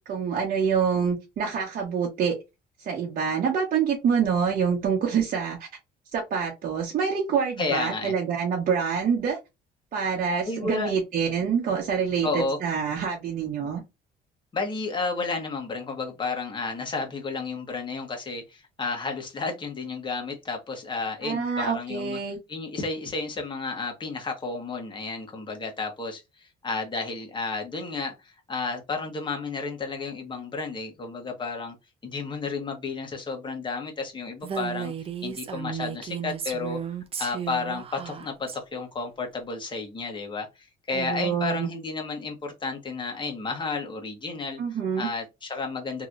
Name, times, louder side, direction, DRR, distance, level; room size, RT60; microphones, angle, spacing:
voice 1, 0.1-2.4 2.8-5.6 6.1-9.4 9.9-13.8 21.2-22.4 40.9-41.7 44.6-45.1, right 6 dB, 55° right, 1.0 m, -26 dB
voice 2, 7.6-8.1 10.4-10.9 12.2-12.6 14.5-22.2 22.5-31.7 32.0-34.9 35.2-36.8 37.2-46.1, left 4 dB, 30° left, 1.3 m, -32 dB
Female speech woman speaking, 34.4-38.6, right 8 dB, 35° right, 0.6 m, -34 dB
3.0 x 2.9 x 2.5 m
cardioid pair, 110°, 17 cm